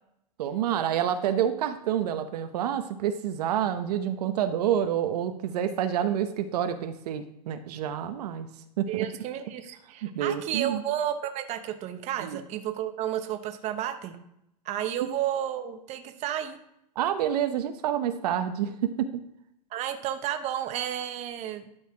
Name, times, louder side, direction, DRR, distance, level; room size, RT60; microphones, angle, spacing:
voice 1, 0.4-8.5 8.8-9.1 10.0-10.8 12.2-12.4 17.0-19.1, right 10 dB, 70° right, 9 dB, 0.8 m, -28 dB
voice 2, 8.9-14.2 14.6-16.6 19.7-21.7, right 11 dB, 30° right, 8 dB, 0.9 m, -32 dB
12.0 x 4.1 x 4.8 m, 0.79 s
hypercardioid pair, 130°, 21 cm